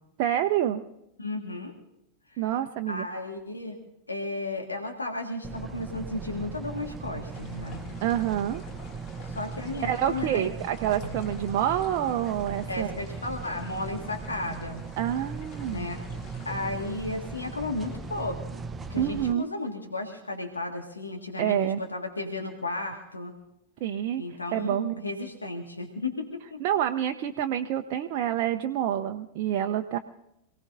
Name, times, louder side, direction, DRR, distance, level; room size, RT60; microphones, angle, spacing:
voice 1, 0.2-0.8 2.4-3.0 8.0-8.6 9.8-12.9 15.0-15.9 19.0-19.5 21.4-21.8 23.8-25.0 26.6-30.0, right 11 dB, 45° right, 5 dB, 0.7 m, -27 dB
voice 2, 1.2-1.7 2.3-2.4 2.9-3.8 4.1-7.8 9.4-10.5 12.7-14.8 15.7-16.0 16.5-18.4 18.9-23.3 24.2-26.6, left 2 dB, 80° left, 3 dB, 1.8 m, -34 dB
sound 1, 5.4-19.3, right 4 dB, 15° right, 0.8 m, -38 dB
sound 2, 7.3-18.4, left 4 dB, 40° left, 2.4 m, -49 dB
27.0 x 18.0 x 2.7 m, 0.86 s
figure-of-eight pair, 90°, 0 cm